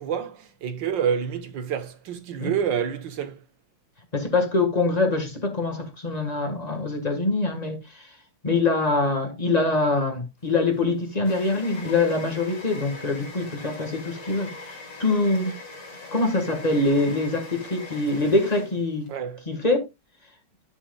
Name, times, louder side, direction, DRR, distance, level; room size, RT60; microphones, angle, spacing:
voice 1, 0.0-3.4 19.1-19.4, right 8 dB, 65° right, 1.8 m, -28 dB
voice 2, 4.1-8.0 8.4-15.5 16.1-19.1 19.5-19.8, left 3 dB, 20° left, 1.5 m, -24 dB
sound 1, 10.4-19.1, left 3 dB, 70° left, 3.4 m, -41 dB
11.0 x 7.1 x 2.3 m
omnidirectional pair, 2.2 m